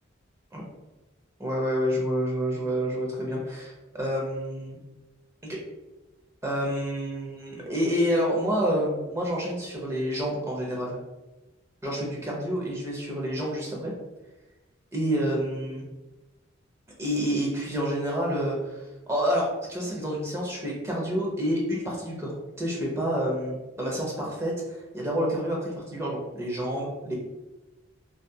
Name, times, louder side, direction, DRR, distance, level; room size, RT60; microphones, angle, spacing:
voice 1, 1.4-4.8 5.5-5.6 6.4-11.0 11.8-13.9 14.9-15.9 17.0-22.3 22.6-27.1, equal, 15° right, -3 dB, 0.6 m, -28 dB
2.6 x 2.4 x 2.2 m, 1.1 s
head